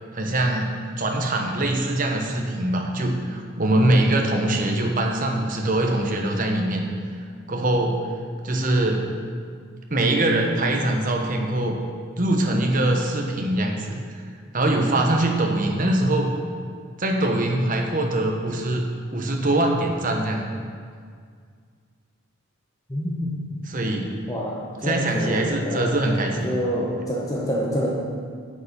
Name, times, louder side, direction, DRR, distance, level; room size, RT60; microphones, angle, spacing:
voice 1, 0.1-0.7 1.0-6.9 7.5-8.0 8.4-9.1 9.9-11.8 12.2-14.2 14.5-16.3 17.0-18.8 19.1-20.5 23.7-24.1 24.8-26.5, right 1 dB, 35° right, 2 dB, 1.1 m, -23 dB
voice 2, 22.9-23.4 24.3-26.0 26.4-27.9, equal, 15° left, -3 dB, 0.9 m, -27 dB
8.8 x 7.0 x 5.4 m, 2.1 s
head